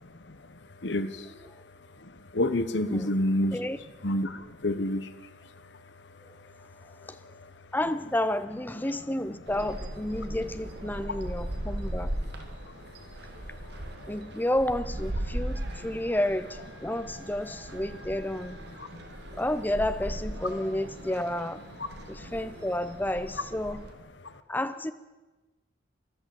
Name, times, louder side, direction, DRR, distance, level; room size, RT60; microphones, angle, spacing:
voice 1, 0.8-1.2 2.3-3.6 4.0-5.1 18.8-18.9, left 1 dB, 65° left, 11 dB, 1.1 m, -27 dB
voice 2, 2.8-3.1 3.5-3.8 7.1-7.2 7.7-12.1 14.1-18.6 19.3-21.6 22.1-23.9 24.5-24.9, left 1 dB, 10° left, 12 dB, 0.6 m, -31 dB
sound 1, 9.5-23.9, right 1 dB, 55° right, 1.6 m, -38 dB
14.0 x 13.0 x 7.8 m, 1.1 s
head